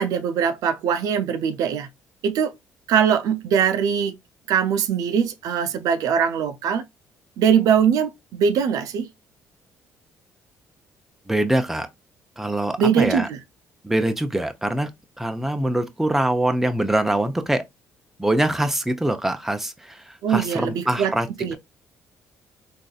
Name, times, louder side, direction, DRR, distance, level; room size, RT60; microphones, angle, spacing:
voice 1, 0.0-1.9 2.2-2.5 2.9-4.1 4.5-6.8 7.4-9.1 12.8-13.4 20.2-21.1 21.4-21.6, right 7 dB, 75° right, 0.5 m, -21 dB
voice 2, 11.3-11.9 12.4-13.3 13.8-14.9 15.2-17.6 18.2-21.3, right 1 dB, 5° right, 0.6 m, -23 dB
3.8 x 2.6 x 2.3 m
supercardioid pair, 75°, 6 cm